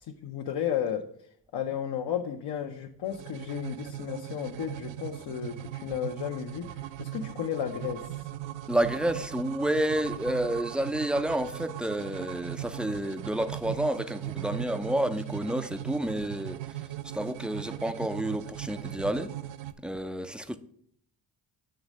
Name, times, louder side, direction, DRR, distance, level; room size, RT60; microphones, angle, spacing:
voice 1, 0.0-1.1 1.5-8.0, left 9 dB, 65° left, 0.7 m, -33 dB
sound 1, 3.1-19.7, right 14 dB, 80° right, 0.5 m, -39 dB
voice 2, 8.7-16.6 17.1-19.3 19.8-20.6, right 1 dB, ahead, 0.3 m, -30 dB
7.7 x 3.2 x 6.1 m
cardioid pair, 80°, 44 cm